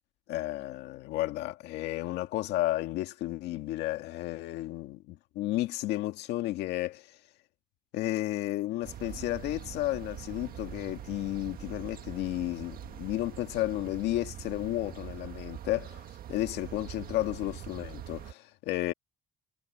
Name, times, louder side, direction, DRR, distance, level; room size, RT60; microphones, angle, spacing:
voice 1, 0.3-7.1 7.9-18.9, left 16 dB, 90° left, 1.9 m, -33 dB
sound 1, 8.8-18.3, right 11 dB, 60° right, 1.6 m, -43 dB
cardioid pair, 110°, 17 cm